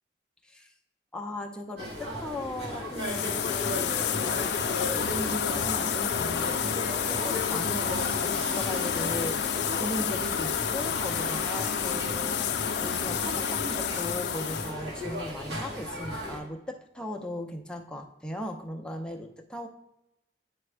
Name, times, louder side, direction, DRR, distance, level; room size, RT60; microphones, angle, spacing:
voice 1, 1.1-3.8 4.1-19.7, left 1 dB, 5° left, 2 dB, 0.5 m, -38 dB
sound 1, 1.8-16.4, left 1 dB, 65° right, 2.1 m, -36 dB
sound 2, 3.0-14.7, left 8 dB, 65° left, 0.4 m, -30 dB
9.8 x 3.4 x 3.3 m, 0.91 s
head